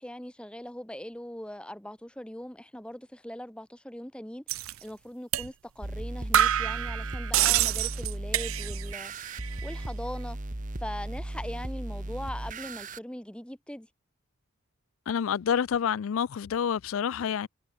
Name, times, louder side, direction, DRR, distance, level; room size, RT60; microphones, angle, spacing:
voice 1, 0.0-9.1 9.6-10.4 10.8-13.9, left 1 dB, 5° left, 1.1 m, -40 dB
sound 1, 4.5-4.7 5.3-5.5 5.8-5.9 6.3-9.0 9.2-9.8, right 12 dB, 70° right, 0.5 m, -27 dB
sound 2, 5.8-13.0, right 1 dB, 35° right, 1.5 m, -36 dB
voice 2, 15.1-17.5, left 8 dB, 70° left, 0.4 m, -28 dB
head